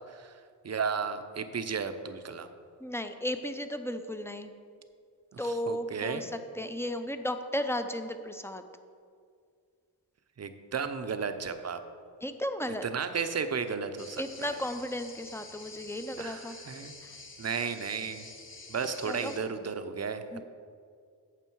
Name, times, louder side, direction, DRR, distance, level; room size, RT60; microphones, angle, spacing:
voice 1, 0.6-2.5 5.3-6.2 10.4-11.8 12.8-14.6 16.2-16.9 17.4-18.2 18.7-20.4, right 5 dB, 35° right, 9 dB, 0.7 m, -34 dB
voice 2, 2.8-4.5 5.4-8.6 12.2-12.8 14.2-16.6 17.0-17.1 19.0-19.3 20.3-20.4, equal, 5° left, 8 dB, 0.5 m, -34 dB
sound 1, 14.0-19.4, left 3 dB, 30° left, 1.1 m, -48 dB
9.1 x 6.7 x 4.6 m, 2.2 s
cardioid pair, 80°, 43 cm